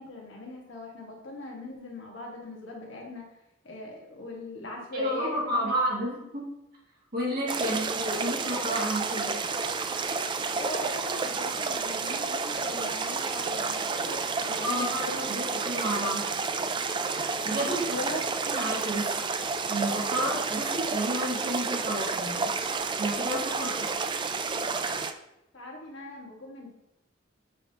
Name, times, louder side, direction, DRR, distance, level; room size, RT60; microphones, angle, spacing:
voice 1, 0.0-3.3 3.6-5.7 7.6-7.8 10.5-15.2 17.9-18.2 25.5-26.7, left 2 dB, 65° left, -1 dB, 1.5 m, -40 dB
voice 2, 4.9-6.5 7.1-9.4 14.6-16.2 17.4-18.1 18.4-19.3 19.7-22.5 23.0-23.9, right 1 dB, 50° right, -4 dB, 2.2 m, -31 dB
sound 1, 7.5-25.1, right 4 dB, 25° right, 0.3 m, -30 dB
7.4 x 5.1 x 2.9 m, 0.88 s
head